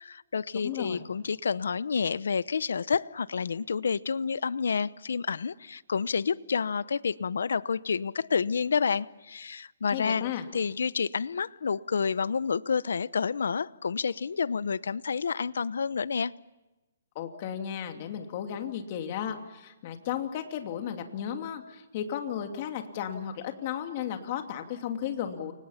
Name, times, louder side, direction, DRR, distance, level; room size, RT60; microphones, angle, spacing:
voice 1, 0.0-16.3, left 5 dB, 80° left, 0.8 m, -29 dB
voice 2, 0.6-1.0 9.9-10.5 17.1-25.5, left 9 dB, 30° left, 2.7 m, -34 dB
29.5 x 25.0 x 5.8 m
hypercardioid pair, 170°, 0 cm